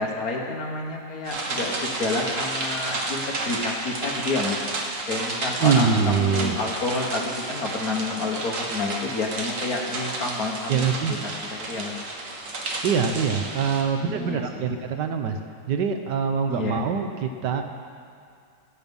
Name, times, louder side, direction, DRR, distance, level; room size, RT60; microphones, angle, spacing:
voice 1, 0.0-4.6 5.1-12.0 14.1-14.6 16.5-16.8, left 3 dB, 55° left, 0 dB, 1.7 m, -29 dB
sound 1, 1.2-13.8, right 2 dB, 50° right, 1.5 m, -31 dB
voice 2, 5.6-6.6 10.7-11.1 12.8-15.4 15.7-17.6, right 6 dB, 75° right, 6 dB, 1.4 m, -24 dB
15.5 x 7.9 x 5.4 m, 2.3 s
omnidirectional pair, 1.9 m